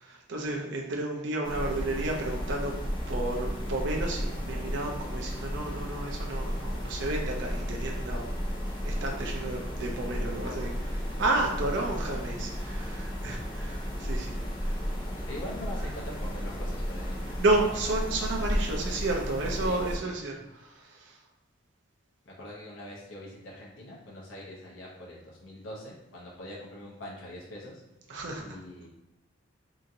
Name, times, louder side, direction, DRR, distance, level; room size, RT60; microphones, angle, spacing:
voice 1, 0.0-2.7 3.1-8.2 8.8-14.4 14.6-14.7 17.4-21.1 28.1-28.4, right 2 dB, 65° right, 0 dB, 0.5 m, -32 dB
sound 1, 1.4-20.0, equal, 25° left, 0.5 m, -33 dB
voice 2, 15.1-17.2 17.5-17.8 19.6-20.4 22.3-27.8 28.4-28.9, left 1 dB, 80° left, -4 dB, 0.7 m, -43 dB
2.8 x 2.5 x 2.6 m, 0.97 s
head